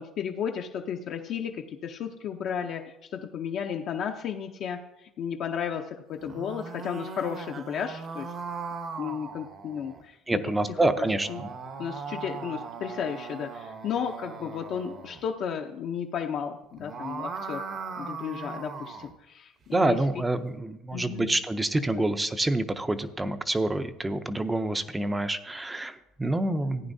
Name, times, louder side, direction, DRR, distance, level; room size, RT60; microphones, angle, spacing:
voice 1, 0.0-8.3 9.0-10.4 11.0-11.4 11.8-17.7 18.0-20.0 20.9-21.3 21.7-22.1 26.5-26.9, left 7 dB, 45° left, 3 dB, 0.6 m, -34 dB
sound 1, 6.1-10.0 11.0-15.2 16.6-19.1, right 5 dB, 35° right, 0.8 m, -39 dB
voice 2, 10.3-11.5 19.7-26.9, right 2 dB, 10° right, 11 dB, 0.5 m, -27 dB
14.5 x 9.7 x 2.7 m, 0.88 s
cardioid pair, 155°, 0 cm